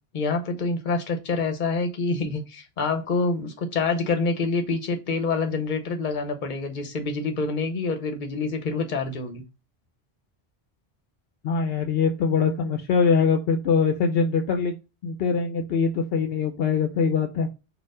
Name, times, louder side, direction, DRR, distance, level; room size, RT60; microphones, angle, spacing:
voice 1, 0.1-9.4, left 3 dB, 50° left, 0.9 m, -26 dB
voice 2, 11.4-14.7 15.0-17.5, left 5 dB, 75° left, 0.8 m, -23 dB
4.4 x 2.4 x 4.7 m
omnidirectional pair, 1.0 m